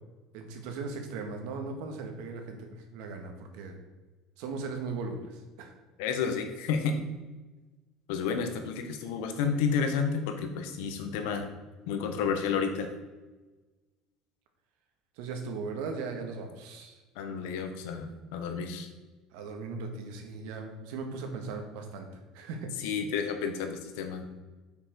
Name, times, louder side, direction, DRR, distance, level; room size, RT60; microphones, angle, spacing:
voice 1, 0.3-3.8 4.4-5.7 15.2-17.0 19.3-22.1 22.3-22.7, right 4 dB, 75° right, 4 dB, 1.7 m, -38 dB
voice 2, 6.0-7.0 8.1-11.5 11.9-12.9 17.2-18.9 22.8-24.2, left 6 dB, 80° left, 6 dB, 1.3 m, -31 dB
8.2 x 6.1 x 4.7 m, 1.2 s
cardioid pair, 160°, 0 cm